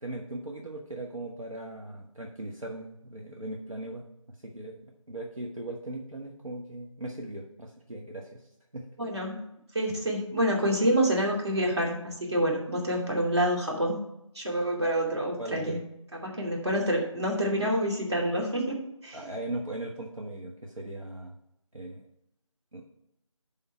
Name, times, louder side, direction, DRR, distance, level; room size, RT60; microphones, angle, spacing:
voice 1, 0.0-4.1 4.4-4.8 5.1-8.5 8.7-8.9 15.4-15.8 19.1-21.3 21.7-22.0 22.7-22.8, right 1 dB, 75° right, -1 dB, 1.4 m, -38 dB
voice 2, 9.0-9.4 9.7-14.0 14.3-15.8 16.2-19.3, right 1 dB, 50° right, -1 dB, 2.6 m, -27 dB
10.5 x 3.9 x 5.7 m, 0.81 s
figure-of-eight pair, 165°, 17 cm